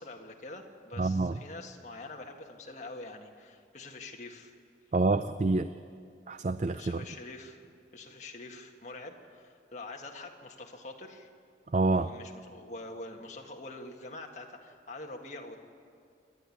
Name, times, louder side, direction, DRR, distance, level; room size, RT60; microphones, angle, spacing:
voice 1, 0.0-4.5 6.8-7.6 7.9-11.3 11.9-15.6, left 2 dB, 40° left, 2 dB, 1.7 m, -45 dB
voice 2, 1.0-1.4 4.9-5.7 6.3-7.0 11.7-12.1, right 3 dB, 40° right, 11 dB, 0.4 m, -27 dB
27.5 x 10.5 x 9.8 m, 2.3 s
head